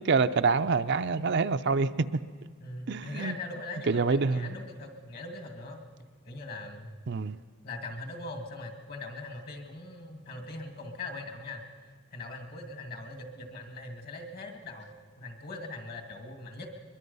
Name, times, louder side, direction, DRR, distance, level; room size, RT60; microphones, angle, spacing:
voice 1, 0.0-2.2 2.9-3.3 3.9-4.5 7.1-7.4, right 4 dB, 55° right, 10 dB, 0.5 m, -26 dB
voice 2, 2.6-5.8 6.3-6.9 7.6-11.6 12.1-16.7, left 2 dB, 45° left, 4 dB, 2.2 m, -41 dB
22.5 x 22.0 x 5.5 m, 1.5 s
head